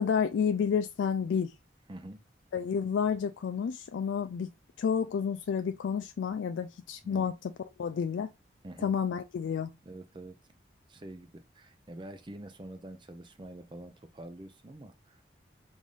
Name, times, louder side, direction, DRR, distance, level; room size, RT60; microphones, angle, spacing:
voice 1, 0.0-1.5 2.5-4.5 4.8-7.4 7.8-8.3 8.8-9.7, left 7 dB, 90° left, 0.3 m, -30 dB
voice 2, 1.9-2.2 7.0-7.3 8.6-9.0 9.9-10.4 10.9-15.2, right 1 dB, 25° right, 0.4 m, -46 dB
5.3 x 2.6 x 3.2 m
head